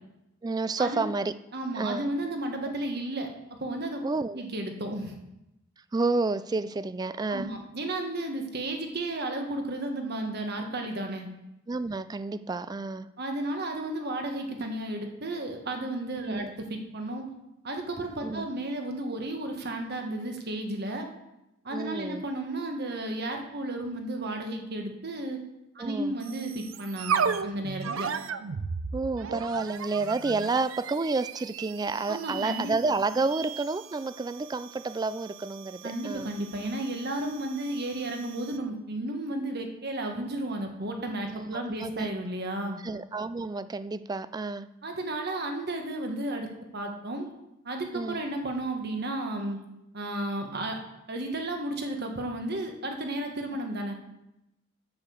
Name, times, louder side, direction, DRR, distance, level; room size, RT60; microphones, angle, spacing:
voice 1, 0.4-1.3 1.7-2.1 4.0-4.4 5.9-7.5 11.7-13.1 16.3-16.5 18.2-18.5 21.7-22.2 25.8-26.2 28.9-36.3 41.2-42.1 42.8-44.7 47.9-48.2, right 3 dB, 20° right, 15 dB, 0.3 m, -30 dB
voice 2, 1.5-4.0 4.3-5.2 7.3-11.3 13.2-16.4 16.7-17.3 17.6-21.1 21.6-25.4 25.7-28.1 32.1-32.7 35.8-42.8 44.8-46.5 46.7-47.3 47.6-49.6 49.9-50.8 51.1-53.9, right 1 dB, 55° right, 4 dB, 1.4 m, -33 dB
sound 1, 26.2-38.7, right 6 dB, 80° right, 0.5 m, -36 dB
7.8 x 6.7 x 7.0 m, 0.91 s
head